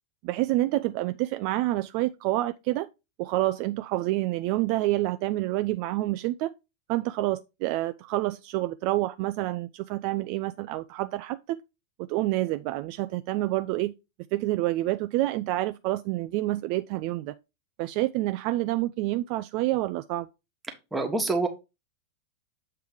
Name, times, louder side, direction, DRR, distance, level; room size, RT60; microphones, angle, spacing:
voice 1, 0.2-2.9 3.2-6.5 6.9-11.6 12.0-13.9 14.3-17.3 17.8-20.3, right 17 dB, 45° right, 0.3 m, -28 dB
voice 2, 20.9-21.5, right 3 dB, 10° right, 1.3 m, -26 dB
7.7 x 3.3 x 4.8 m
figure-of-eight pair, 90°, 0 cm